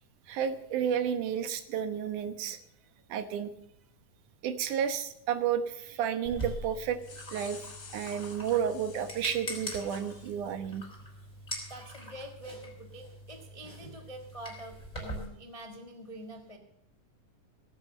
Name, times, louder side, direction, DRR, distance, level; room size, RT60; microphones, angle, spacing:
voice 1, 0.3-2.6 3.1-3.5 4.4-7.0 7.3-7.6 7.9-10.8, right 8 dB, 75° right, 9 dB, 2.6 m, -31 dB
sound 1, 6.2-15.3, equal, 10° left, 5.0 m, -43 dB
sound 2, 6.8-9.3 9.9-10.5, left 5 dB, 65° left, 4.0 m, -50 dB
voice 2, 11.7-16.6, right 1 dB, 35° left, 3 dB, 0.5 m, -46 dB
18.0 x 8.8 x 6.6 m, 0.77 s
omnidirectional pair, 3.6 m